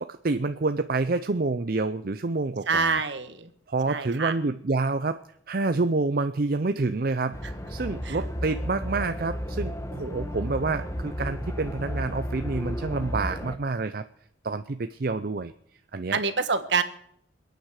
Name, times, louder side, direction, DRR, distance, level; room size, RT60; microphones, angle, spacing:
voice 1, 0.0-3.0 3.7-14.0 14.4-15.5 15.9-16.2, right 3 dB, 50° right, 10 dB, 0.5 m, -28 dB
voice 2, 2.7-3.5 3.9-4.3 8.0-8.2 16.1-16.8, right 5 dB, 65° right, 10 dB, 1.4 m, -26 dB
sound 1, 7.3-13.6, equal, 15° left, 1.2 m, -33 dB
28.0 x 9.3 x 4.9 m, 0.68 s
head